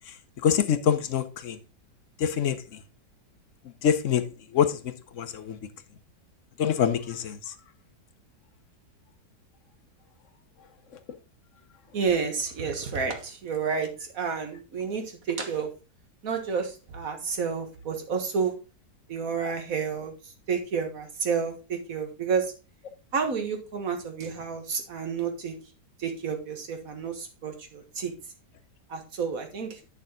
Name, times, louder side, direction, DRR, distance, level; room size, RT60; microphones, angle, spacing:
voice 1, 0.4-1.6 2.2-2.6 3.8-4.2 4.5-4.7 5.2-5.6 6.6-7.3, left 8 dB, 60° left, 0.9 m, -24 dB
voice 2, 11.9-15.7 16.2-18.5 19.1-20.1 20.5-22.5 23.1-25.5 26.0-28.1 28.9-29.7, right 6 dB, 55° right, 1.8 m, -30 dB
8.4 x 6.6 x 3.8 m
omnidirectional pair, 1.8 m